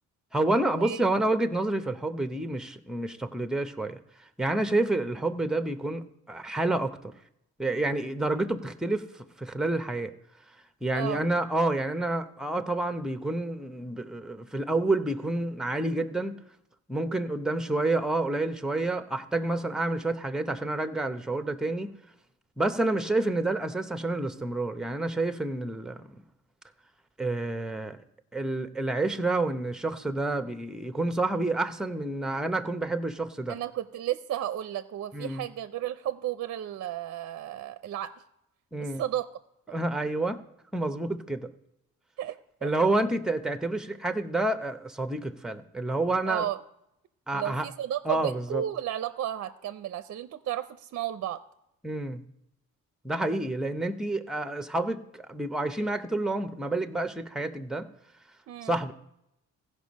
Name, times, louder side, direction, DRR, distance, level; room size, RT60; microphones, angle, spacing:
voice 1, 0.3-4.0 4.4-7.1 7.6-10.1 10.8-16.3 16.9-21.9 22.6-26.1 27.2-28.0 28.3-33.6 35.1-35.4 38.7-39.0 39.7-40.4 40.7-41.5 42.6-46.5 47.3-47.7 48.0-48.6 51.8-52.2 53.0-57.9 58.6-58.9, right 2 dB, ahead, 9 dB, 0.7 m, -29 dB
voice 2, 10.9-11.2 33.5-38.1 38.8-39.3 42.2-42.7 46.2-46.6 47.3-51.4 58.5-58.7, right 11 dB, 55° right, 12 dB, 0.5 m, -33 dB
15.5 x 5.3 x 5.2 m, 0.83 s
cardioid pair, 90°, 30 cm